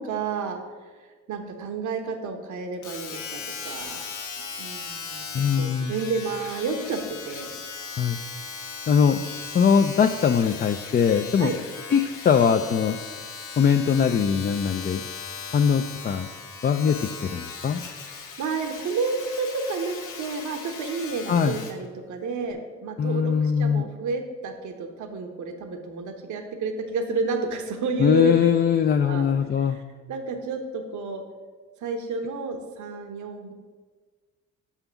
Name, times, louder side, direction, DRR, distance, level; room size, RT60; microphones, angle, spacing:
voice 1, 0.0-4.0 4.6-7.5 11.4-11.5 18.4-28.5 29.0-29.3 29.6-29.8 30.1-31.2 31.8-33.5, right 4 dB, 75° right, 5 dB, 1.1 m, -31 dB
Domestic sounds home sounds, 2.8-21.8 22.5-22.6, left 5 dB, 80° left, 1.4 m, -38 dB
voice 2, 5.3-5.9 8.0-8.2 8.9-9.3 9.5-11.5 11.9-12.0 12.2-13.0 13.6-15.0 15.5-16.3 16.6-17.8 21.3-21.5 23.0-23.9 28.0-29.8, left 7 dB, 30° left, 6 dB, 0.4 m, -21 dB
5.9 x 5.7 x 6.9 m, 1.5 s
cardioid pair, 90°, 30 cm